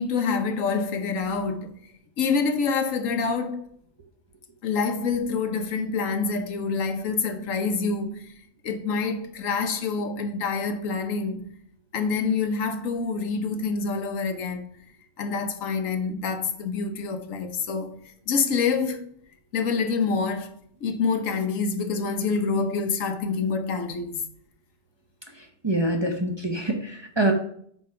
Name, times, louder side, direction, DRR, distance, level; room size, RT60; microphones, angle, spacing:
voice 1, 0.0-1.8 2.2-3.7 4.6-8.2 8.6-11.5 11.9-14.7 15.2-18.0 18.3-19.1 19.5-20.5 20.8-24.2, left 5 dB, 90° left, 1.2 m, -26 dB
voice 2, 25.6-27.3, right 1 dB, 25° right, 0.7 m, -25 dB
8.4 x 3.2 x 5.8 m
omnidirectional pair, 1.3 m